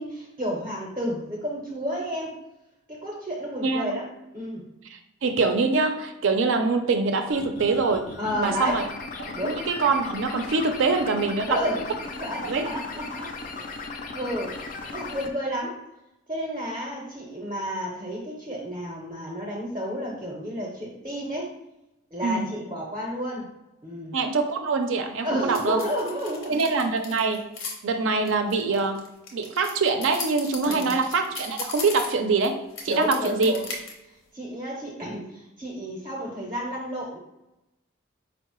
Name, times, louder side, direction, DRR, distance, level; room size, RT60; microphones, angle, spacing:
voice 1, 0.0-2.3 2.9-4.0 4.3-4.7 8.2-8.8 9.3-9.6 11.5-11.9 12.2-13.6 14.1-15.8 16.3-21.5 22.1-23.5 23.8-24.2 25.2-26.6 30.6-31.0 32.9-33.7 34.3-37.2, equal, 25° right, -2 dB, 0.5 m, -31 dB
voice 2, 3.6-3.9 4.9-8.1 8.4-8.8 9.4-11.6 12.4-12.7 22.2-22.5 24.1-25.8 26.5-27.4 27.8-29.0 29.3-32.6 32.8-33.5, right 4 dB, 70° right, 6 dB, 0.4 m, -24 dB
sound 1, 7.3-15.3, left 3 dB, 40° left, 0.3 m, -37 dB
sound 2, 25.5-27.7 28.2-32.5 32.7-33.9, left 4 dB, 75° left, 0.7 m, -37 dB
4.6 x 2.0 x 3.0 m, 0.92 s
head